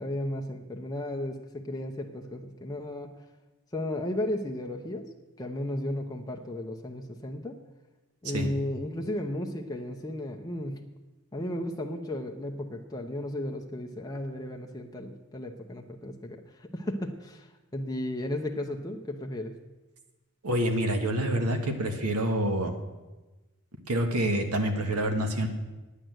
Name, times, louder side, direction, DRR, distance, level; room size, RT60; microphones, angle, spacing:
voice 1, 0.0-3.2 3.7-5.1 5.4-7.6 8.2-10.8 11.3-19.6, left 1 dB, 15° left, 1 dB, 0.7 m, -34 dB
voice 2, 20.4-22.7 23.9-25.5, right 1 dB, 80° right, 6 dB, 1.5 m, -27 dB
9.7 x 9.1 x 7.6 m, 1.1 s
head